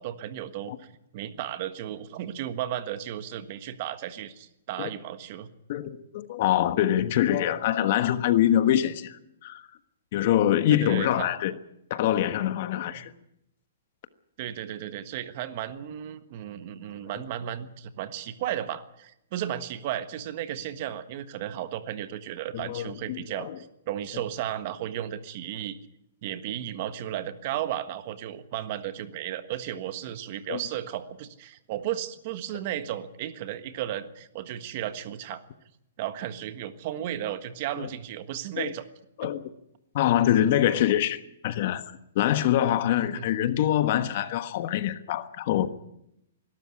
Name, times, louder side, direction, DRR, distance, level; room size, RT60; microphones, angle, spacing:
voice 1, 0.0-5.5 10.7-11.3 14.4-25.8 26.2-35.4 36.0-38.8 39.2-39.3 43.0-43.3, right 11 dB, 45° right, 1.5 m, -34 dB
voice 2, 5.7-9.6 10.1-11.5 11.9-13.1 22.5-23.6 30.5-30.6 37.8-37.9 38.6-38.7 39.2-39.4 39.9-41.8 42.1-45.7, left 11 dB, 50° left, 1.3 m, -24 dB
20.5 x 12.5 x 9.9 m
hypercardioid pair, 150°, 0 cm